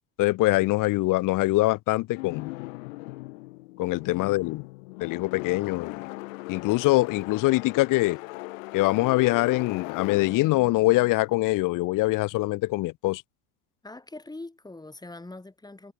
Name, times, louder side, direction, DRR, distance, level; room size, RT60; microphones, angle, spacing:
voice 1, 0.2-2.5 3.8-4.7 5.0-6.1 6.5-8.2 8.7-13.2, left 20 dB, 55° left, 0.8 m, -23 dB
sound 1, 2.1-12.1, left 24 dB, 80° left, 1.9 m, -39 dB
voice 2, 13.8-15.9, left 2 dB, 10° left, 4.4 m, -42 dB
supercardioid pair, 90°, 40 cm